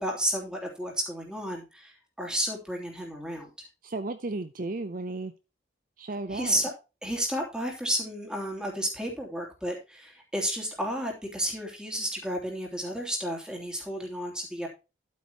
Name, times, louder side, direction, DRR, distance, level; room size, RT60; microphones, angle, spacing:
voice 1, 0.0-3.5 6.3-6.7 7.0-14.7, equal, 5° right, 0 dB, 3.0 m, -32 dB
voice 2, 3.8-5.3 6.0-6.6, right 2 dB, 45° right, 11 dB, 0.6 m, -34 dB
12.0 x 8.6 x 3.0 m, 0.28 s
head